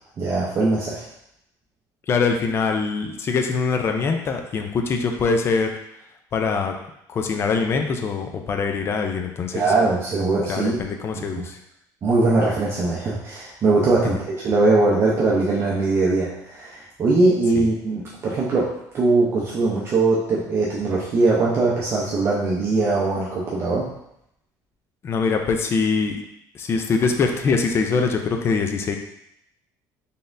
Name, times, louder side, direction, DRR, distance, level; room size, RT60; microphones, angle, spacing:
voice 1, 0.2-1.0 9.5-10.8 11.1-11.4 12.0-23.9, right 3 dB, 35° right, -6 dB, 0.7 m, -21 dB
voice 2, 2.1-5.7 6.3-6.7 7.1-9.7 10.5-11.6 17.6-17.7 25.0-26.2 26.5-29.0, left 4 dB, 30° left, 4 dB, 0.4 m, -23 dB
4.0 x 3.5 x 2.6 m, 0.79 s
cardioid pair, 145°, 8 cm